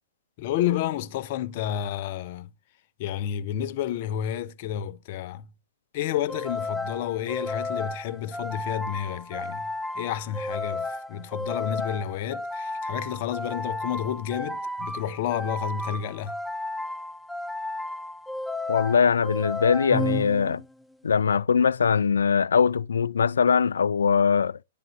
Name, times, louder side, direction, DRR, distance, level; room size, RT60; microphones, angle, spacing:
voice 1, 0.4-2.5 3.0-5.5 5.9-16.4, left 10 dB, 55° left, 0.6 m, -30 dB
sound 1, 6.3-20.8, left 2 dB, ahead, 0.4 m, -33 dB
voice 2, 18.7-20.6 21.0-24.6, left 6 dB, 85° left, 0.3 m, -21 dB
10.5 x 3.5 x 2.9 m
hypercardioid pair, 115°, 0 cm